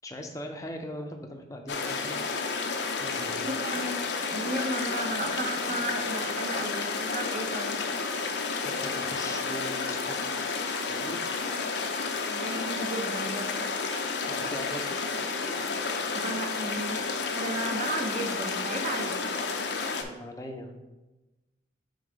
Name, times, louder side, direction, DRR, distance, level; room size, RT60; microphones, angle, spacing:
voice 1, 0.0-2.2 3.0-3.5 8.6-10.5 10.9-11.2 14.2-15.0 20.0-20.8, equal, 15° left, 3 dB, 0.6 m, -40 dB
sound 1, 1.7-20.0, left 4 dB, 60° left, 0.6 m, -31 dB
voice 2, 3.4-4.0 4.3-7.8 11.4-11.6 12.2-13.6 16.1-17.0 17.3-19.4, right 1 dB, 40° right, 3 dB, 0.7 m, -34 dB
5.4 x 3.7 x 5.0 m, 1.1 s
head